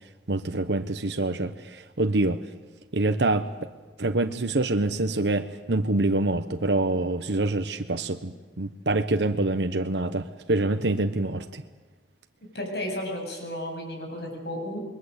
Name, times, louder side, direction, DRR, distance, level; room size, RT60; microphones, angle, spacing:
voice 1, 0.3-2.4 2.9-3.7 4.0-11.6, right 2 dB, 75° right, 7 dB, 1.1 m, -26 dB
voice 2, 12.5-14.8, left 1 dB, 65° left, 3 dB, 7.8 m, -33 dB
28.0 x 22.0 x 8.2 m, 1.2 s
head